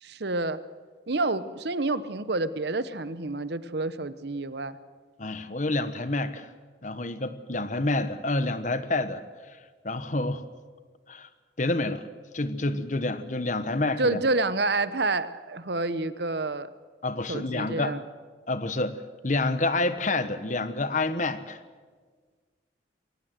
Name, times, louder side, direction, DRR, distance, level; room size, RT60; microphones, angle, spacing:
voice 1, 0.0-0.6 1.1-4.8 14.0-16.7 17.3-18.0, right 2 dB, 60° right, 14 dB, 0.9 m, -28 dB
voice 2, 5.2-6.5 6.8-9.2 9.8-10.4 11.1-11.3 11.6-12.0 12.3-14.2 17.0-17.9 18.5-19.0 19.2-21.6, left 2 dB, 40° left, 12 dB, 1.1 m, -28 dB
22.5 x 18.0 x 7.9 m, 1.5 s
head